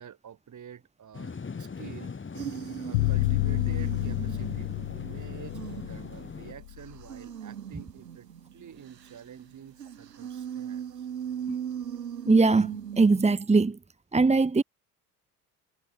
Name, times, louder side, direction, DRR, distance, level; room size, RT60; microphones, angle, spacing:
voice 1, 0.0-2.2 2.8-11.1, right 8 dB, 40° right, 5.0 m, -48 dB
sound 1, 1.1-6.5, left 5 dB, 25° left, 4.9 m, -40 dB
sound 2, 2.3-13.3, right 9 dB, 90° right, 1.7 m, -39 dB
sound 3, 2.9-7.0, left 22 dB, 70° left, 0.8 m, -29 dB
voice 2, 12.3-13.8 14.1-14.6, right 3 dB, 15° right, 1.5 m, -21 dB
figure-of-eight pair, 60°, 47 cm